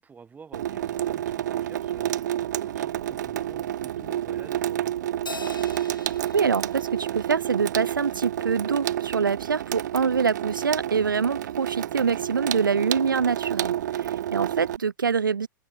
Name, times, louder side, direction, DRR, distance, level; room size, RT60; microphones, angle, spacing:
voice 1, 0.0-2.2 2.6-5.1, right 6 dB, 15° right, 3.5 m, -50 dB
Water tap faucet / Sink (filling or washing), 0.5-14.8, right 12 dB, 60° right, 1.1 m, -29 dB
Crash cymbal, 5.3-7.9, left 3 dB, 85° left, 4.0 m, -41 dB
voice 2, 6.3-15.5, right 6 dB, 80° right, 0.6 m, -25 dB
figure-of-eight pair, 100°, 11 cm